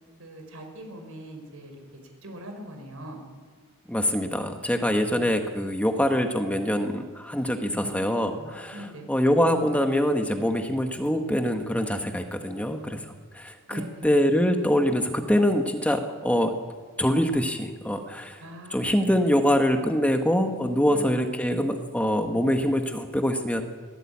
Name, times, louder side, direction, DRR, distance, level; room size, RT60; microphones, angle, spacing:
voice 1, 0.2-1.7 2.2-3.2 7.6-9.1 13.7-14.1 18.4-19.2 20.9-21.1, equal, 70° right, 4 dB, 5.5 m, -41 dB
voice 2, 3.9-16.6 17.0-18.4 18.7-23.6, equal, 5° left, 5 dB, 1.4 m, -24 dB
22.5 x 17.0 x 8.6 m, 1.5 s
head